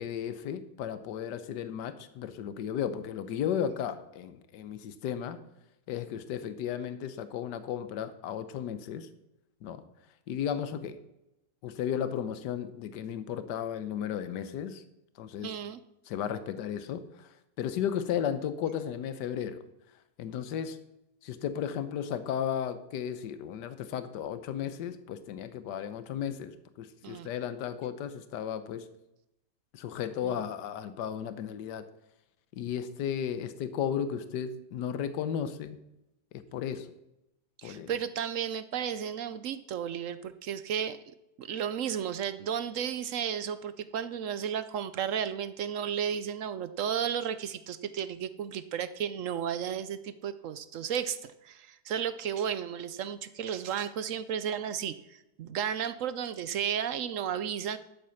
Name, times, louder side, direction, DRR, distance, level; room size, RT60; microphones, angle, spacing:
voice 1, 0.0-5.4 5.9-9.1 9.6-9.8 10.3-11.0 11.6-14.8 15.2-15.6 16.1-19.6 20.2-20.8 21.2-28.9 29.7-31.9 32.6-35.8 36.3-36.9 37.6-37.9, left 9 dB, 80° left, 12 dB, 1.4 m, -34 dB
voice 2, 15.4-15.8 27.0-27.3 30.2-30.4 37.6-41.0 41.4-57.8, right 8 dB, 65° right, 14 dB, 0.8 m, -33 dB
12.0 x 8.0 x 5.8 m, 0.88 s
omnidirectional pair, 1.8 m